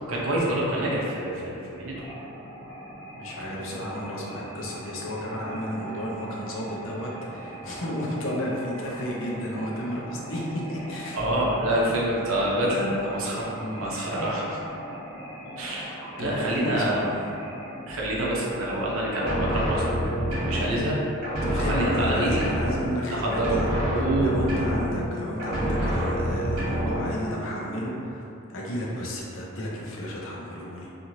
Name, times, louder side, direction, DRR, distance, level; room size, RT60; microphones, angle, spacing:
voice 1, 0.0-1.9 11.1-13.5 13.8-14.6 15.6-17.1 17.9-20.0 20.4-21.0 21.3-22.4 23.1-23.6 23.9-24.3, right 1 dB, 75° right, -5 dB, 0.6 m, -27 dB
sound 1, 1.9-20.1, right 1 dB, 20° left, 0.8 m, -41 dB
voice 2, 3.2-11.3 11.7-11.8 13.6-13.9 16.2-17.1 21.4-28.2 28.5-30.9, equal, 65° left, -4 dB, 0.5 m, -32 dB
sound 2, 19.1-21.0 21.2-23.1 23.3-25.1 25.4-27.1, equal, 45° right, 1.3 m, -27 dB
3.0 x 2.5 x 2.7 m, 2.7 s
head